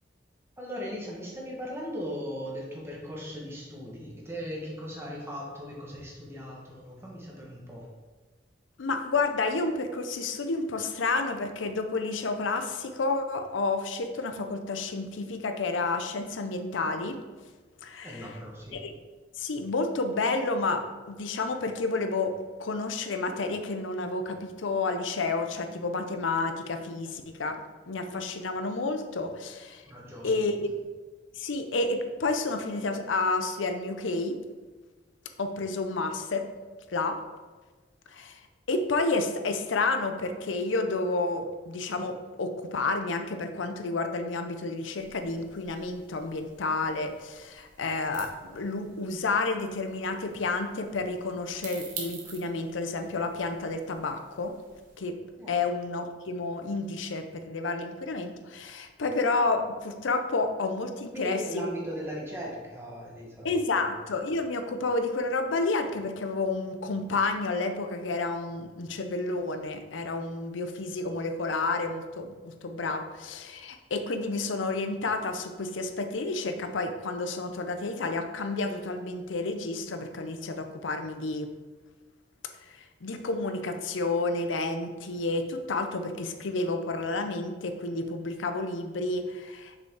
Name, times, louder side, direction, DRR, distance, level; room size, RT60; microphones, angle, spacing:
voice 1, 0.6-7.9 18.0-18.8 29.9-30.3 55.4-55.6 61.1-63.5 63.8-63.9, equal, 15° right, -3 dB, 1.3 m, -38 dB
voice 2, 8.8-17.2 17.8-18.3 18.7-18.9 19.4-27.6 27.9-29.8 30.2-30.7 31.3-34.4 35.4-36.5 36.9-37.2 38.1-38.4 38.7-54.6 55.0-55.2 55.5-61.7 63.4-81.5 82.7-89.7, left 3 dB, 90° left, 7 dB, 0.6 m, -30 dB
sound 1, 44.9-55.0, right 5 dB, 45° right, 1.2 m, -48 dB
6.2 x 5.1 x 3.7 m, 1.3 s
head